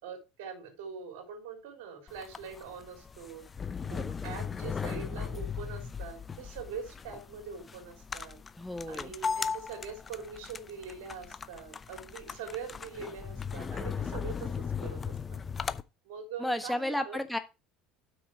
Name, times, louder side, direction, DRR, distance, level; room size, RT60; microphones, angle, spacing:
voice 1, 0.0-3.4 3.8-8.4 8.9-15.4 16.0-17.2, right 6 dB, 75° right, 3 dB, 3.3 m, -43 dB
sound 1, 2.1-15.8, left 6 dB, 30° left, 0.6 m, -38 dB
voice 2, 3.9-4.3 8.6-9.1 16.4-17.4, left 1 dB, 5° left, 8 dB, 1.3 m, -33 dB
8.0 x 6.2 x 4.5 m, 0.29 s
hypercardioid pair, 70°, 0 cm